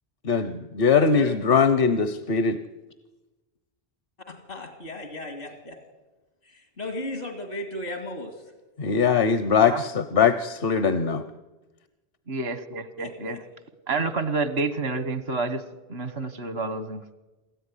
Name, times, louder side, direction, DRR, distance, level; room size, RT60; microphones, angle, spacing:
voice 1, 0.2-2.6 8.8-11.2, left 6 dB, 65° left, 12 dB, 1.1 m, -21 dB
voice 2, 1.0-1.3 4.3-5.8 6.4-8.5 13.0-13.4, left 1 dB, 80° left, 6 dB, 2.5 m, -36 dB
voice 3, 12.3-13.4 13.9-15.6 15.9-17.0, right 3 dB, 75° right, 13 dB, 1.6 m, -29 dB
27.5 x 14.0 x 9.8 m, 1.1 s
omnidirectional pair, 1.0 m